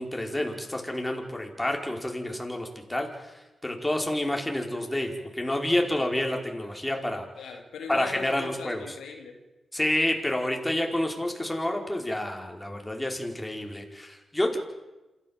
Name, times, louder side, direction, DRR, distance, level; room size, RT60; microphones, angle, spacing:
voice 1, 0.0-3.3 3.6-7.3 7.9-8.8 9.7-14.6, left 1 dB, 15° left, 2 dB, 5.0 m, -29 dB
voice 2, 7.4-9.4, left 4 dB, 80° left, 3 dB, 2.5 m, -39 dB
27.5 x 13.5 x 7.5 m, 1.1 s
supercardioid pair, 40°, 0 cm